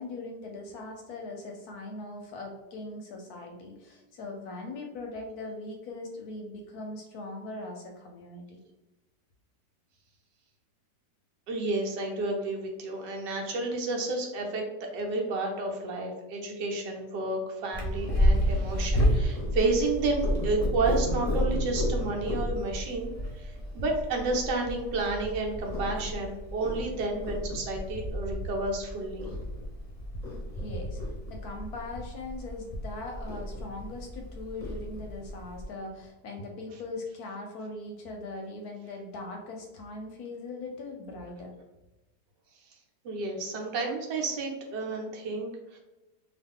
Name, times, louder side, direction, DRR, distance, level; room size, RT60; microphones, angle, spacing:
voice 1, 0.0-8.6 30.5-31.0 31.3-41.6, left 2 dB, 70° left, 2 dB, 1.0 m, -40 dB
voice 2, 11.5-29.3 43.0-45.8, right 2 dB, 85° right, 1 dB, 1.3 m, -31 dB
Purr, 17.7-35.7, equal, 35° left, 0.6 m, -31 dB
2.9 x 2.4 x 3.5 m, 1.0 s
omnidirectional pair, 1.9 m